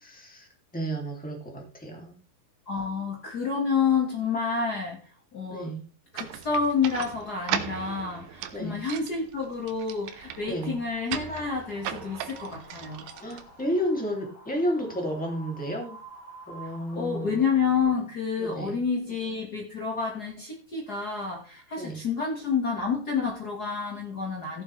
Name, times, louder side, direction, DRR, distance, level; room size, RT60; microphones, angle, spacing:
voice 1, 0.1-2.2 5.5-5.8 8.5-8.8 10.4-10.8 13.2-16.0 16.5-17.4 18.4-18.8 21.8-22.0, equal, 5° left, 1 dB, 1.6 m, -32 dB
voice 2, 2.7-5.0 5.3-5.7 6.1-13.0 16.9-24.6, left 5 dB, 75° left, -1 dB, 0.9 m, -29 dB
sound 1, 6.1-14.0, right 10 dB, 75° right, 2.4 m, -37 dB
Wind, 9.7-17.8, right 1 dB, 40° left, 5.4 m, -50 dB
16.5 x 7.3 x 3.3 m, 0.38 s
omnidirectional pair, 4.8 m